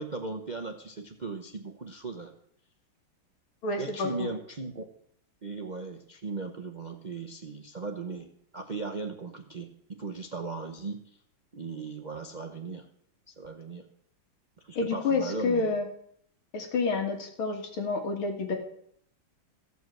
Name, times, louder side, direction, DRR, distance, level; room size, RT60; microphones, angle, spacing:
voice 1, 0.0-2.3 3.8-4.9 5.4-11.0 11.5-12.8 13.3-13.9 14.6-15.7, right 3 dB, 70° right, 5 dB, 0.4 m, -37 dB
voice 2, 3.6-4.3 14.8-15.9 16.5-18.6, left 4 dB, 85° left, 4 dB, 2.6 m, -29 dB
15.0 x 5.6 x 7.7 m, 0.67 s
omnidirectional pair, 2.2 m